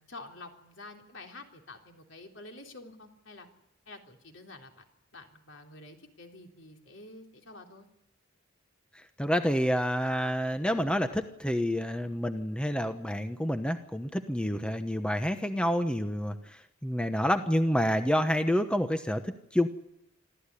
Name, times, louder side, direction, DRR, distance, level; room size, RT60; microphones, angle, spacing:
voice 1, 0.0-3.5 3.9-4.8 5.1-7.9, left 2 dB, 65° left, 3 dB, 3.7 m, -48 dB
voice 2, 9.2-19.7, equal, 5° left, 8 dB, 1.0 m, -28 dB
26.5 x 14.0 x 10.0 m, 0.81 s
head